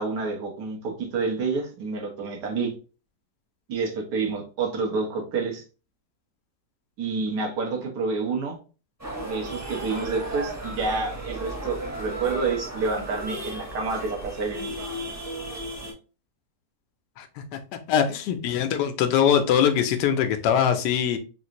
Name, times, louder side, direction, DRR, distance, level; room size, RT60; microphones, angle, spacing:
voice 1, 0.0-2.7 3.7-5.6 7.0-8.6 9.2-14.7, right 4 dB, 80° right, 1.6 m, -28 dB
sound 1, 9.0-15.9, right 1 dB, 15° right, 0.7 m, -35 dB
voice 2, 17.9-21.2, left 8 dB, 85° left, 1.2 m, -22 dB
3.9 x 2.5 x 2.9 m
omnidirectional pair, 1.8 m